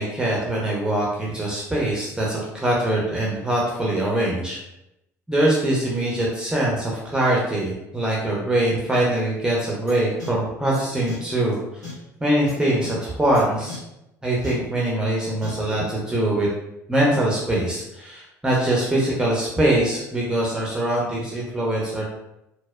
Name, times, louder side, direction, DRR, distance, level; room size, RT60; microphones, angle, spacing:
voice 1, 0.0-4.6 5.3-11.6 12.2-13.8 14.2-16.5 16.9-22.0, right 1 dB, 10° right, -4 dB, 0.7 m, -23 dB
sound 1, 9.9-10.0 10.2-10.3 10.7-10.8 11.1-11.2 11.8-11.9 12.5-12.6 12.8-12.9 13.3-13.4 13.7-13.8 14.4-14.5 15.4-15.5, left 4 dB, 80° left, 1.0 m, -35 dB
4.0 x 2.1 x 2.3 m, 0.88 s
figure-of-eight pair, 60°, 9 cm